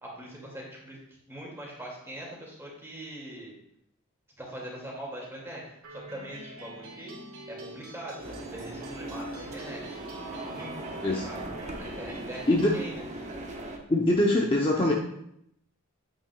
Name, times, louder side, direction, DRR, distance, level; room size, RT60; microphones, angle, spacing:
voice 1, 0.0-1.0 1.3-3.5 4.4-7.2 7.5-10.0 10.3-11.4 11.8-13.0, right 1 dB, 10° right, -3 dB, 2.3 m, -42 dB
sound 1, 5.8-12.8, right 1 dB, 70° right, 1.6 m, -46 dB
sound 2, 8.2-13.8, right 1 dB, 30° right, 1.0 m, -39 dB
voice 2, 13.9-14.9, left 1 dB, 25° left, -2 dB, 0.7 m, -23 dB
8.8 x 8.7 x 2.3 m, 0.75 s
head